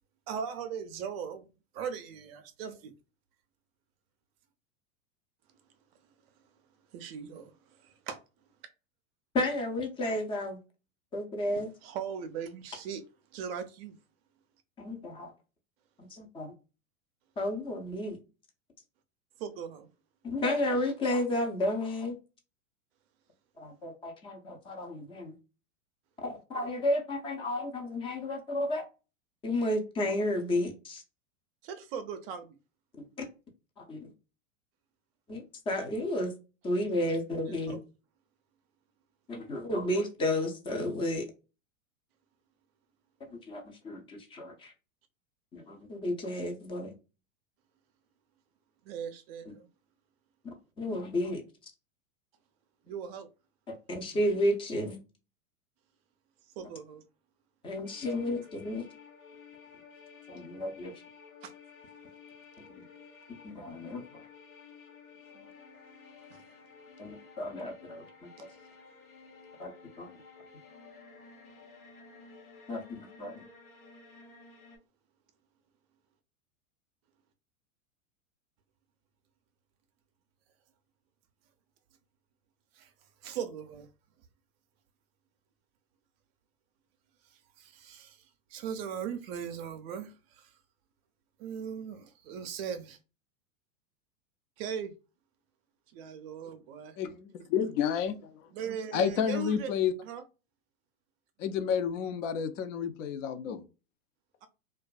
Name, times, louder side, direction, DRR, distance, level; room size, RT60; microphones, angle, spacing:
voice 1, 0.3-1.5 1.7-2.9 6.9-8.2 11.8-13.0 13.3-14.0 19.4-19.9 31.6-32.6 37.0-37.2 37.5-37.8 48.8-49.7 52.9-53.3 56.6-57.0 61.4-61.5 65.3-65.5 66.3-66.4 82.7-82.9 83.2-83.9 87.2-90.6 91.4-93.0 94.6-94.9 95.9-97.0 98.5-99.7 100.0-100.2 104.4-104.5, right 7 dB, 50° right, 0.4 m, -39 dB
voice 2, 9.3-10.6 11.1-11.7 14.8-15.3 16.0-16.5 17.4-18.2 20.2-22.1 23.6-25.3 26.2-28.8 29.4-31.0 33.0-33.1 33.8-34.1 35.3-36.3 36.6-37.8 39.3-41.2 43.5-44.7 45.5-46.9 50.8-51.7 53.7-55.0 57.6-58.9 60.3-60.9 62.8-62.9 63.4-64.3 67.0-68.3 69.6-69.7 70.0-70.1 72.7-73.5, left 1 dB, 15° left, 0.4 m, -32 dB
sound 1, 57.8-74.8, left 5 dB, 85° left, 1.0 m, -53 dB
voice 3, 97.0-98.5 98.9-99.9 101.4-103.6, left 8 dB, 60° left, 0.6 m, -30 dB
2.5 x 2.3 x 2.3 m
hypercardioid pair, 110°, 42 cm